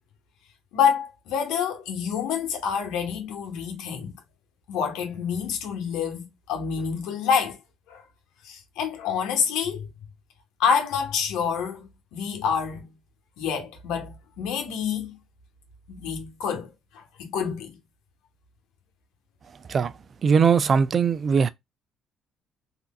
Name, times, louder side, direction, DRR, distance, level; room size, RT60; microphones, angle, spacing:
voice 1, 0.7-4.1 4.7-7.6 7.9-8.0 8.4-9.9 10.6-12.8 13.4-15.1 15.9-17.7, left 7 dB, 80° left, 1.0 m, -27 dB
voice 2, 20.2-21.5, right 6 dB, 45° right, 0.3 m, -20 dB
3.3 x 2.8 x 2.2 m
supercardioid pair, 75°, 0 cm